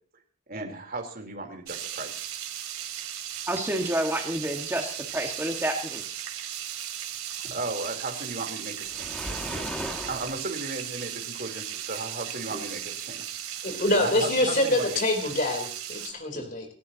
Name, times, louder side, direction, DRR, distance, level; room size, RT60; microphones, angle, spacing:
voice 1, 0.5-2.2 7.4-13.2 14.0-15.0, right 3 dB, 45° right, 3 dB, 3.8 m, -36 dB
sound 1, 1.7-16.1, right 10 dB, 90° right, 2.8 m, -36 dB
voice 2, 3.5-6.0 12.5-12.6 16.3-16.4, right 1 dB, 10° right, 1 dB, 1.8 m, -29 dB
Waves surf, 8.9-10.4, equal, 5° left, 2.2 m, -36 dB
voice 3, 13.6-16.7, left 1 dB, 40° left, 4 dB, 3.8 m, -25 dB
29.0 x 13.5 x 3.0 m, 0.40 s
head